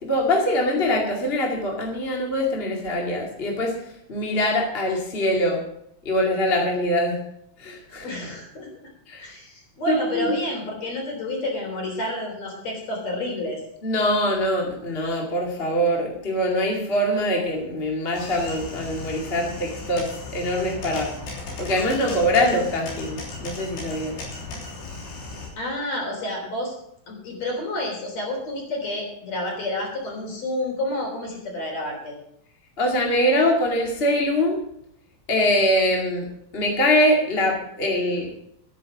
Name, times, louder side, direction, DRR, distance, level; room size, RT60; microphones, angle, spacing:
voice 1, 0.0-3.7 4.1-5.6 6.0-7.2 7.6-8.1 9.1-9.2 9.9-10.4 13.8-21.1 21.6-24.2 32.8-34.6 35.3-36.3 36.5-38.3, left 1 dB, 25° left, 0 dB, 1.4 m, -23 dB
voice 2, 8.0-8.7 9.2-13.6 25.6-26.8 27.1-32.1, left 1 dB, 45° left, 0 dB, 4.5 m, -29 dB
sound 1, 18.1-25.5, left 3 dB, 85° left, 5.3 m, -36 dB
12.5 x 9.6 x 6.1 m, 0.75 s
omnidirectional pair, 4.6 m